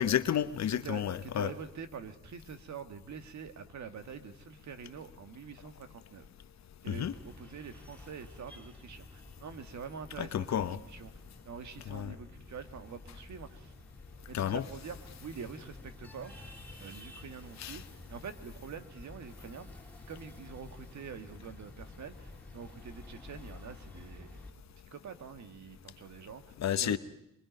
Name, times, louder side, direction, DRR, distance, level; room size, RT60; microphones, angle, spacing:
voice 1, 0.0-1.5 6.9-7.1 10.2-10.8 11.9-12.2 14.3-14.6 17.6-17.8 26.6-27.0, left 10 dB, 65° left, 0.8 m, -31 dB
voice 2, 0.8-6.3 6.8-11.1 11.4-13.7 14.3-16.3 16.8-19.8 20.1-24.4 24.7-27.0, right 6 dB, 70° right, 1.9 m, -46 dB
sound 1, 6.9-24.5, left 2 dB, 5° left, 2.8 m, -51 dB
24.0 x 22.5 x 5.3 m
cardioid pair, 100°, 30 cm